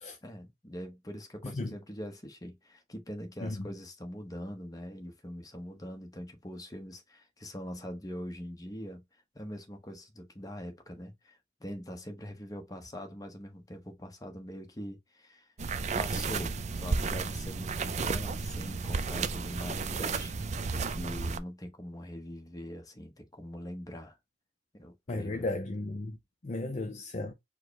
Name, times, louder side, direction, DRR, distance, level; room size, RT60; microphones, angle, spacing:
voice 1, 0.2-15.5 16.0-24.2 24.7-25.5, equal, 20° left, 1.0 m, -43 dB
voice 2, 1.4-1.8 3.4-3.6 25.1-26.2 26.4-27.3, left 2 dB, 40° left, 0.6 m, -35 dB
sound 1, 15.6-21.4, right 4 dB, 40° right, 0.5 m, -33 dB
4.7 x 2.2 x 4.6 m
head